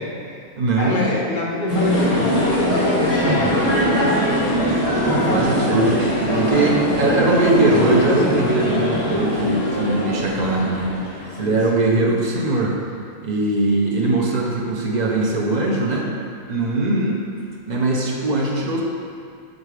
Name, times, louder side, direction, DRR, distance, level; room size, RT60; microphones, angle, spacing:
voice 1, 0.0-4.3 5.0-5.7 6.2-6.8 11.4-11.8, left 3 dB, 70° left, -4 dB, 0.4 m, -28 dB
voice 2, 0.6-1.1 5.1-6.0 6.3-11.0 11.4-12.8 13.2-16.1 16.5-17.2 17.7-18.8, right 2 dB, 65° right, -3 dB, 0.4 m, -21 dB
sound 1, 1.7-11.5, equal, 25° left, 1.3 m, -21 dB
5.3 x 4.0 x 4.7 m, 2.2 s
omnidirectional pair, 1.7 m